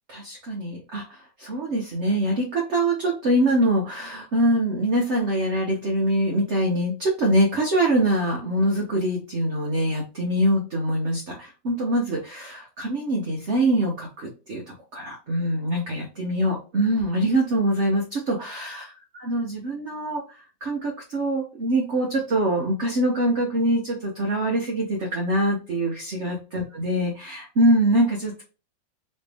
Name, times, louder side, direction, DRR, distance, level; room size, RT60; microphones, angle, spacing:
voice 1, 0.1-14.6 14.9-20.2 20.6-28.4, right 1 dB, 50° right, -2 dB, 1.0 m, -24 dB
3.2 x 3.2 x 3.3 m, 0.32 s
omnidirectional pair, 2.0 m